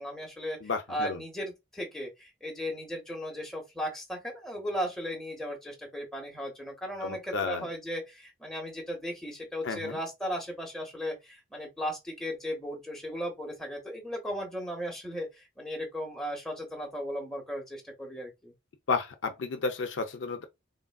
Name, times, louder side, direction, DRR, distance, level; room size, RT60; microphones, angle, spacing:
voice 1, 0.0-0.6 0.9-18.5, equal, 5° left, 1.0 m, -36 dB
voice 2, 0.6-1.2 7.0-7.7 9.6-10.0 18.9-20.4, left 4 dB, 70° left, 0.5 m, -32 dB
3.2 x 2.4 x 2.3 m
head